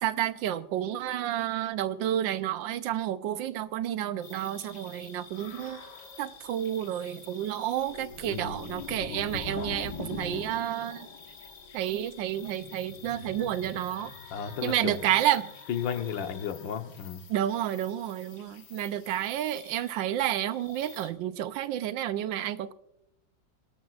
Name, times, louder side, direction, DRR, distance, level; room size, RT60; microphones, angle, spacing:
voice 1, 0.0-5.8 6.2-11.1 11.7-14.1 14.6-15.5 17.3-22.7, right 11 dB, 85° right, 1.4 m, -30 dB
scary night ambience, 4.2-21.1, left 4 dB, 65° left, 2.0 m, -44 dB
voice 2, 8.3-8.6 14.3-15.0 15.7-17.2, left 8 dB, 85° left, 1.7 m, -33 dB
25.5 x 12.0 x 2.4 m
omnidirectional pair, 2.0 m